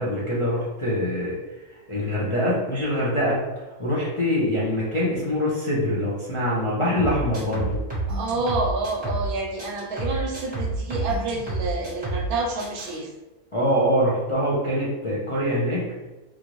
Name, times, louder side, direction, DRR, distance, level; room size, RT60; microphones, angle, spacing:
voice 1, 0.0-1.3 1.9-3.4 3.8-7.8 13.5-15.9, equal, 35° left, -8 dB, 0.5 m, -24 dB
sound 1, 7.0-9.3 9.6-12.3 12.6-13.0, right 2 dB, 5° right, 1.2 m, -29 dB
voice 2, 8.1-13.1, right 2 dB, 75° right, 0 dB, 1.0 m, -28 dB
3.2 x 2.5 x 3.0 m, 1.1 s
omnidirectional pair, 1.6 m